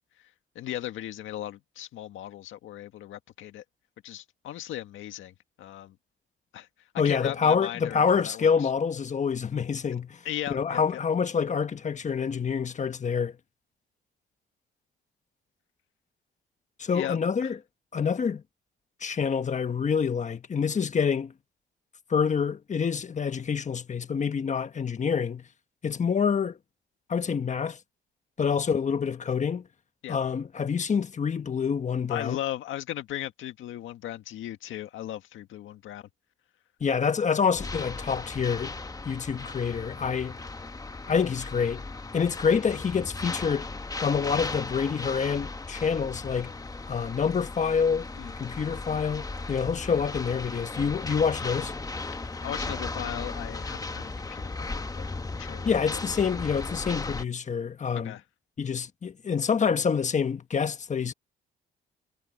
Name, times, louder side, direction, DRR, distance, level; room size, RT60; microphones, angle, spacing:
voice 1, 0.6-3.6 4.0-5.9 6.5-6.7 7.0-8.7 10.3-10.8 16.9-17.5 28.5-28.6 30.0-30.2 32.1-36.1 48.2-48.3 52.4-56.0 58.0-58.2, left 12 dB, 80° left, 1.8 m, -37 dB
voice 2, 7.0-10.2 10.5-13.4 16.8-17.6 17.9-18.4 19.0-21.3 22.1-25.4 25.8-26.6 27.1-27.8 28.4-29.7 30.1-32.4 36.8-38.7 39.0-40.4 41.1-41.8 42.1-43.7 44.0-46.5 46.9-48.1 48.4-51.7 55.6-58.1 58.6-61.1, left 6 dB, 35° left, 1.4 m, -27 dB
sound 1, 37.5-57.2, left 3 dB, 20° left, 1.1 m, -36 dB
cardioid pair, 90°, 20 cm